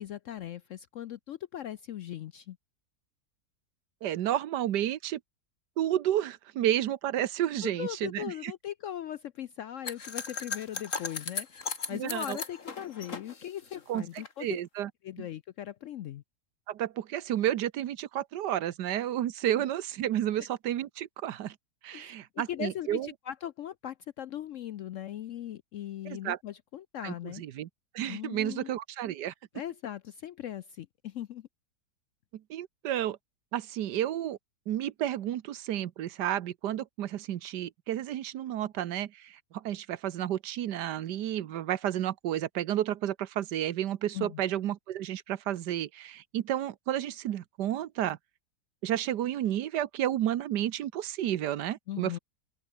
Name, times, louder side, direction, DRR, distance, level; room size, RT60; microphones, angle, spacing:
voice 1, 0.0-2.6 7.6-14.5 15.0-16.2 21.9-22.1 22.5-27.4 28.1-28.7 29.5-31.5 44.1-44.4 51.9-52.2, left 11 dB, 70° left, 0.7 m, -39 dB
voice 2, 4.0-5.2 5.8-8.5 11.9-12.4 13.9-14.1 14.4-14.9 15.2-15.3 16.7-21.5 21.8-23.1 26.1-26.4 27.0-27.7 27.9-29.3 32.5-33.2 33.5-34.4 34.7-48.2 48.8-52.2, right 11 dB, 80° right, 1.5 m, -31 dB
sound 1, 9.9-14.3, left 5 dB, 50° left, 2.4 m, -37 dB
open air
omnidirectional pair, 1.8 m